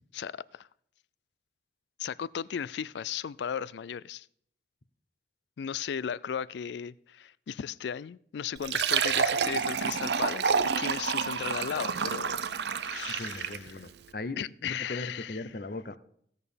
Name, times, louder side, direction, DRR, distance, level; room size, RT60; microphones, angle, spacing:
voice 1, 0.1-0.7 2.0-4.3 5.6-13.9 14.4-15.4, left 8 dB, 80° left, 0.4 m, -36 dB
Fill (with liquid), 8.6-13.7, right 6 dB, 75° right, 0.6 m, -29 dB
voice 2, 13.2-15.9, left 2 dB, 55° left, 0.7 m, -38 dB
16.0 x 6.5 x 5.2 m
head